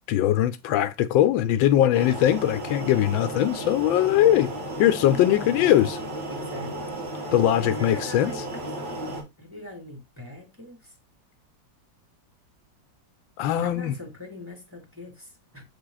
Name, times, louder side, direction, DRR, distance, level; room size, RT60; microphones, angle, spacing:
voice 1, 0.1-4.5 4.8-6.0 7.3-8.3 13.4-13.9, left 12 dB, 85° left, 1.3 m, -21 dB
sound 1, 1.9-9.2, right 1 dB, 90° right, 2.7 m, -34 dB
voice 2, 5.1-5.7 6.3-7.1 7.6-11.0 13.6-15.6, left 1 dB, 5° right, 2.2 m, -42 dB
7.5 x 3.5 x 3.9 m
omnidirectional pair, 2.1 m